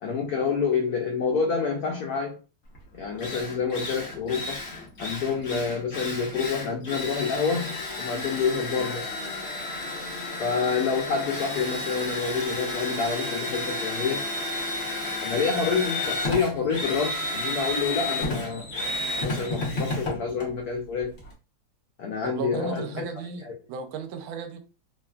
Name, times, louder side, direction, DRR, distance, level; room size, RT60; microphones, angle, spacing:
voice 1, 0.0-2.4 2.9-4.6 5.0-9.1 10.4-14.2 15.2-18.7 19.1-21.1 22.0-23.0 23.5-23.6, left 5 dB, 90° left, 0.8 m, -28 dB
Drill, 2.7-2.8 3.2-21.3, left 2 dB, 50° left, 1.0 m, -32 dB
voice 2, 22.2-24.6, right 6 dB, 85° right, 1.4 m, -35 dB
3.3 x 2.2 x 2.3 m
omnidirectional pair, 2.2 m